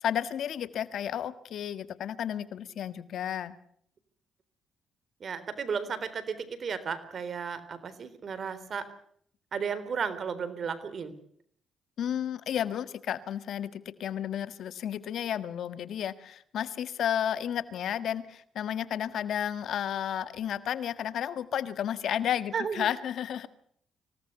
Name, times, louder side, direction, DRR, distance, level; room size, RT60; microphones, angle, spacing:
voice 1, 0.0-3.6 12.0-23.5, left 10 dB, 70° left, 13 dB, 1.6 m, -32 dB
voice 2, 5.2-8.9 9.5-11.1 22.5-22.9, right 6 dB, 50° right, 13 dB, 3.8 m, -34 dB
26.0 x 17.5 x 6.8 m, 0.64 s
cardioid pair, 90°, 0 cm